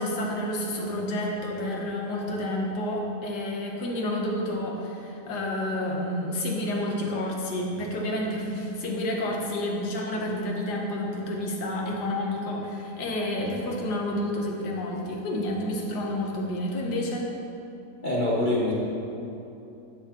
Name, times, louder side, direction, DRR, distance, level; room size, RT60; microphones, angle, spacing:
voice 1, 0.0-17.3, left 1 dB, 70° left, -1 dB, 1.6 m, -29 dB
voice 2, 18.0-18.7, left 1 dB, 45° left, -5 dB, 0.6 m, -25 dB
12.0 x 5.9 x 2.9 m, 2.9 s
omnidirectional pair, 1.9 m